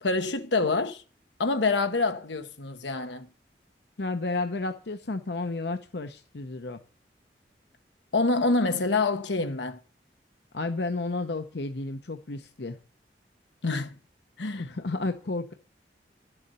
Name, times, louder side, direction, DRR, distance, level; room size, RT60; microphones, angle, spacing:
voice 1, 0.0-1.0 1.4-3.3 8.1-9.8 13.6-14.0 14.4-14.7, left 3 dB, 90° left, 1.2 m, -26 dB
voice 2, 4.0-6.8 10.5-12.8 14.6-15.5, left 3 dB, 70° left, 0.8 m, -32 dB
12.0 x 7.1 x 6.9 m
head